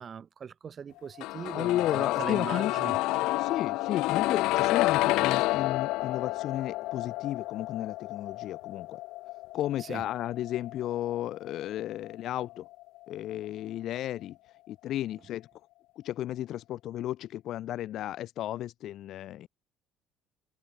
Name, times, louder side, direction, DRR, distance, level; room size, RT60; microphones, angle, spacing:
voice 1, 0.0-3.0 9.8-10.0, right 7 dB, 25° right, 0.7 m, -40 dB
sound 1, 1.2-13.0 13.3-13.4, left 20 dB, 70° left, 0.7 m, -30 dB
voice 2, 1.5-2.7 3.4-9.0 9.5-12.7 13.1-15.5 16.0-19.5, left 13 dB, 45° left, 0.3 m, -33 dB
cardioid pair, 175°, 0 cm